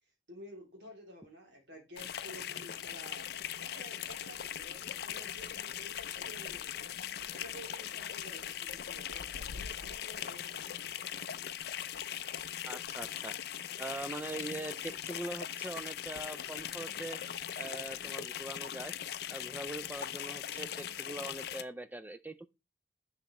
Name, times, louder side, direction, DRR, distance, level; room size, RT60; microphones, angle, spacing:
voice 1, 0.3-6.9 7.3-11.0, equal, 65° right, 2.8 m, -52 dB
sound 1, 2.0-21.6, left 10 dB, 55° left, 0.4 m, -40 dB
voice 2, 12.6-13.3 13.8-17.2 17.6-19.0 19.3-22.5, right 2 dB, 10° right, 0.4 m, -42 dB
6.8 x 6.4 x 3.0 m
head